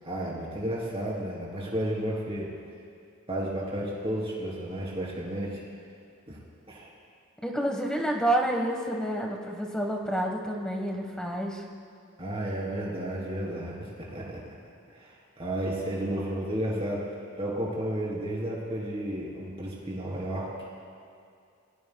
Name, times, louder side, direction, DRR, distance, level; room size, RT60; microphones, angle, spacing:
voice 1, 0.0-2.5 3.3-5.6 6.3-6.4 6.7-6.9 12.2-14.4 14.9-17.1 17.4-20.5, right 1 dB, 25° right, -4 dB, 3.4 m, -32 dB
voice 2, 7.4-11.6, right 1 dB, 5° left, 1 dB, 1.3 m, -29 dB
28.0 x 18.0 x 2.3 m, 2.4 s
head